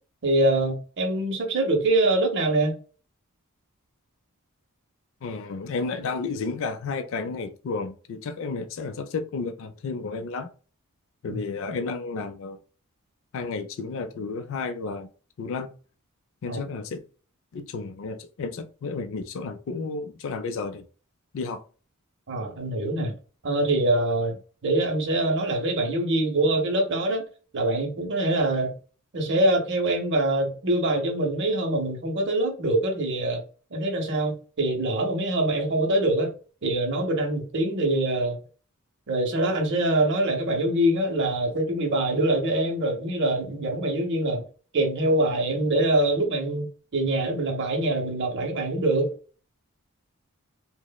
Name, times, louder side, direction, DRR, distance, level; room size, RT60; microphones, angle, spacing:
voice 1, 0.2-2.8 11.3-11.4 16.5-16.6 22.3-23.1 23.4-27.2 27.5-28.7 29.1-33.4 33.7-36.3 36.6-38.4 39.1-44.5 44.7-46.7 46.9-49.1, right 1 dB, 55° right, 0.7 m, -24 dB
voice 2, 5.2-10.5 11.2-12.6 13.3-15.1 15.4-15.7 16.4-17.0 17.5-20.8 21.3-21.6, left 4 dB, 60° left, 0.4 m, -32 dB
2.9 x 2.0 x 2.2 m
head